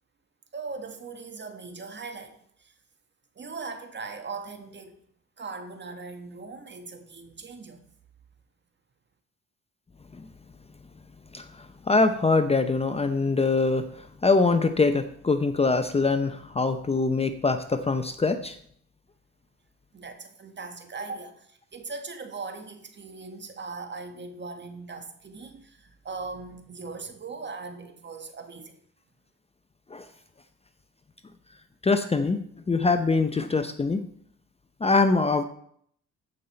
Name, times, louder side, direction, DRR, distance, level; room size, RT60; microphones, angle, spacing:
voice 1, 0.5-2.7 3.3-5.0 5.4-7.8 19.9-28.8, right 4 dB, 35° right, 7 dB, 1.6 m, -39 dB
voice 2, 11.9-13.9 14.2-18.5 29.9-30.0 31.8-32.4 32.7-34.0 34.8-35.4, left 3 dB, 20° left, 9 dB, 0.7 m, -23 dB
14.5 x 5.5 x 4.4 m, 0.65 s
cardioid pair, 90°, 30 cm